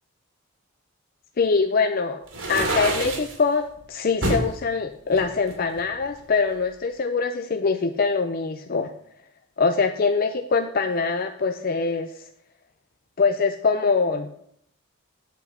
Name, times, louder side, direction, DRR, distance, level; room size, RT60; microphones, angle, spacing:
voice 1, 1.4-2.2 2.5-8.9 9.6-12.1 13.2-14.4, left 4 dB, 45° left, 7 dB, 0.5 m, -23 dB
sound 1, 2.3-3.4 4.2-4.5 5.1-6.2, right 1 dB, 70° right, 2.4 m, -27 dB
8.3 x 7.8 x 4.3 m, 0.69 s
head